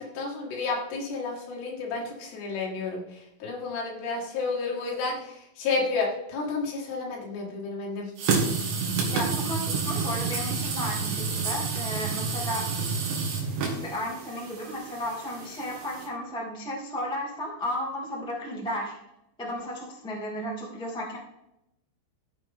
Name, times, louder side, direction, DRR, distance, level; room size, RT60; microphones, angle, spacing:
voice 1, 0.0-3.0 3.4-8.1, left 4 dB, 65° left, -1 dB, 3.9 m, -31 dB
sound 1, 8.2-16.1, right 5 dB, 70° right, 3.8 m, -29 dB
voice 2, 9.1-12.6 13.8-18.9 19.4-21.2, equal, 5° left, -3 dB, 0.7 m, -34 dB
14.5 x 7.9 x 3.7 m, 0.84 s
omnidirectional pair, 5.7 m